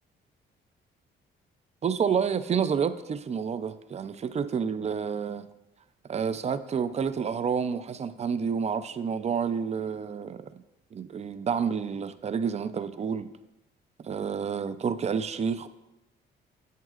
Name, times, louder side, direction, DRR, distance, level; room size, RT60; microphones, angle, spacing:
voice 1, 1.8-5.5 6.1-10.5 10.9-13.3 14.0-15.7, right 6 dB, 35° right, 0.4 m, -29 dB
9.3 x 7.9 x 2.4 m
cardioid pair, 90°, 20 cm